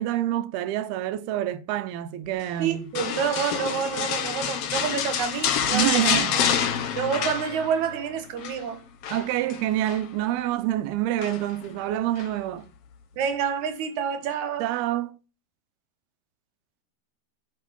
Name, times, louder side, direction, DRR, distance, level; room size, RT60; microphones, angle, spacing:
voice 1, 0.0-2.9 5.7-6.4 9.1-12.7 14.6-15.2, right 13 dB, 80° right, 2.7 m, -27 dB
voice 2, 2.6-6.4 6.9-8.8 13.2-14.7, right 7 dB, 60° right, 2.5 m, -28 dB
sound 1, 2.9-8.0 8.2-8.6 9.0-10.1 11.2-11.6 12.2-12.3, left 8 dB, 85° left, 1.3 m, -27 dB
17.0 x 6.5 x 5.3 m
omnidirectional pair, 4.5 m